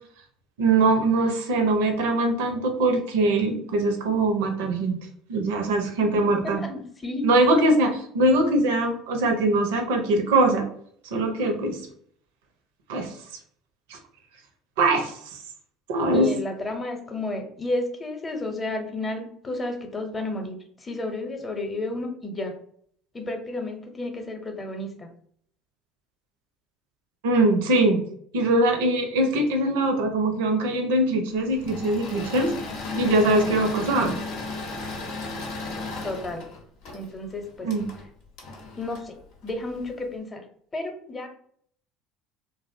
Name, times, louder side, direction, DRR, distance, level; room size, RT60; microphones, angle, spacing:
voice 1, 0.6-5.0 5.3-6.6 7.2-10.6 11.1-11.8 12.9-13.1 13.9-14.0 14.8-15.4 15.9-16.3 27.2-28.0 28.3-32.5 33.0-34.2 37.6-37.9, right 2 dB, 75° right, 5 dB, 0.5 m, -22 dB
voice 2, 6.2-7.2 16.1-20.5 20.8-22.5 23.1-25.1 36.0-36.4 36.9-37.7 38.8-39.1 39.4-40.4 40.7-41.3, left 2 dB, 25° left, 4 dB, 0.7 m, -32 dB
Engine / Mechanisms, 31.5-39.9, left 4 dB, 65° left, 0.6 m, -35 dB
2.5 x 2.0 x 2.5 m, 0.62 s
hypercardioid pair, 65°, 0 cm